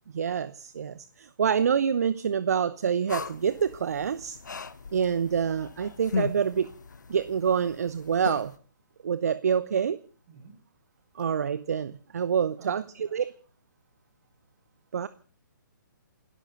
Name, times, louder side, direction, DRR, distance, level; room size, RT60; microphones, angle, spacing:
voice 1, 0.1-4.4 4.9-6.7 7.1-8.5 9.0-10.0 11.2-13.3 14.9-15.1, right 7 dB, 50° right, 15 dB, 0.9 m, -27 dB
sound 1, 3.1-8.6, left 5 dB, 65° left, 1.2 m, -38 dB
voice 2, 10.3-10.6 12.6-13.3, right 6 dB, 30° right, 3 dB, 6.5 m, -52 dB
28.5 x 13.0 x 3.8 m, 0.42 s
figure-of-eight pair, 135°, 11 cm